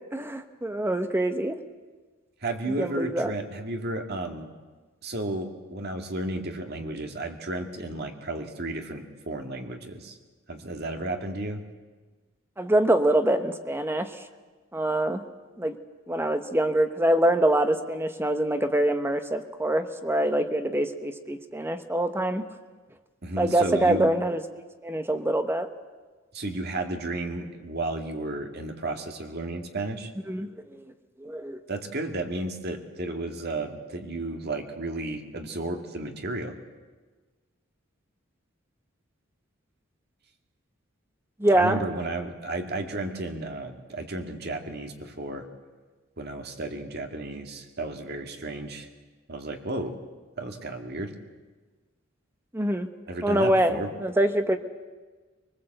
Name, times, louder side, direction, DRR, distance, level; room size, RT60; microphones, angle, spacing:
voice 1, 0.1-1.6 2.8-3.3 12.6-14.1 14.7-15.2 15.6-15.8 16.1-22.5 23.4-24.4 24.8-25.7 30.3-30.8 31.2-31.6 41.4-41.8 52.5-52.9 53.2-54.6, right 1 dB, 10° right, 8 dB, 1.0 m, -24 dB
voice 2, 2.4-4.5 5.0-10.2 10.5-11.6 23.2-24.1 26.3-30.1 31.7-36.6 41.5-45.5 46.2-48.9 49.3-49.9 50.4-51.1 53.1-53.9, right 2 dB, 55° right, 4 dB, 2.2 m, -33 dB
23.0 x 20.5 x 7.9 m, 1.3 s
head